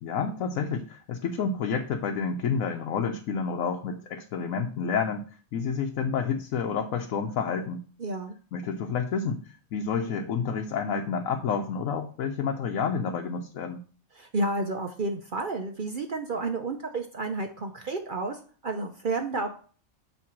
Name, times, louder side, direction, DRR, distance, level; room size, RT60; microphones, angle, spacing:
voice 1, 0.0-5.2 5.5-7.8 8.5-9.4 9.7-13.8, left 6 dB, 90° left, 3 dB, 1.1 m, -29 dB
voice 2, 8.0-8.3 14.2-19.5, right 2 dB, 50° right, 5 dB, 0.7 m, -31 dB
8.5 x 3.2 x 6.0 m, 0.42 s
omnidirectional pair, 1.4 m